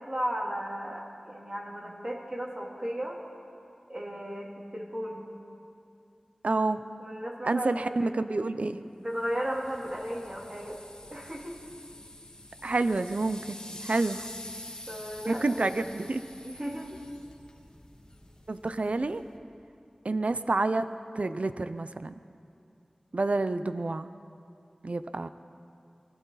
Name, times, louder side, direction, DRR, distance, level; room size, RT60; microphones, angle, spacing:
voice 1, 0.0-3.2 3.9-5.2 7.0-8.1 9.0-10.8 11.1-11.6 14.9-15.9 16.4-17.0, equal, 30° right, -3 dB, 3.1 m, -35 dB
voice 2, 6.4-6.8 7.4-8.8 12.6-13.6 13.8-14.3 15.3-16.2 18.5-19.2 20.0-20.9 21.2-22.1 23.1-24.1 24.8-25.3, right 3 dB, 70° right, 11 dB, 0.5 m, -28 dB
sound 1, 9.1-19.4, left 1 dB, 35° left, 2.0 m, -47 dB
24.5 x 14.5 x 4.1 m, 2.5 s
wide cardioid pair, 40°, 2 cm